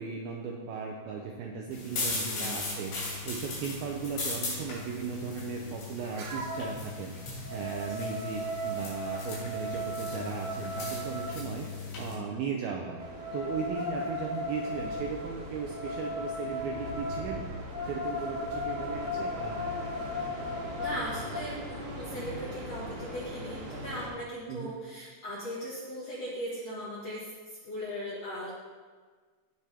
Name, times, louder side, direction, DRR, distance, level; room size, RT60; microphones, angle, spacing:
voice 1, 0.0-2.9 3.3-11.7 12.0-13.0 13.3-17.4 17.8-19.6 24.5-24.7, right 6 dB, 85° right, 0 dB, 2.2 m, -37 dB
sound 1, 1.7-12.1, left 3 dB, 75° left, 5.4 m, -38 dB
sound 2, 6.2-6.8 7.2-11.4 12.9-21.5, left 1 dB, 65° right, 2.7 m, -37 dB
sound 3, 13.0-24.1, right 1 dB, 50° right, 2.2 m, -42 dB
voice 2, 20.8-28.6, equal, 55° left, -7 dB, 1.9 m, -38 dB
17.0 x 5.9 x 3.4 m, 1.5 s
omnidirectional pair, 5.1 m